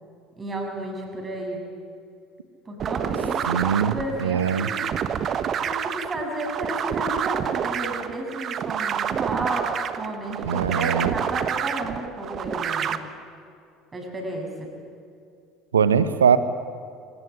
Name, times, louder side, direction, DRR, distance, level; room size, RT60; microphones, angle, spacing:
voice 1, 0.4-1.6 2.7-4.9 5.7-9.7 10.0-13.0 13.9-14.7, right 2 dB, 25° right, 2 dB, 7.2 m, -32 dB
sound 1, 2.8-13.0, right 8 dB, 40° right, 1.3 m, -28 dB
voice 2, 3.5-4.7 10.4-11.1 15.7-16.4, right 7 dB, 80° right, 14 dB, 1.1 m, -21 dB
24.5 x 19.0 x 9.8 m, 2.3 s
figure-of-eight pair, 65°, 0 cm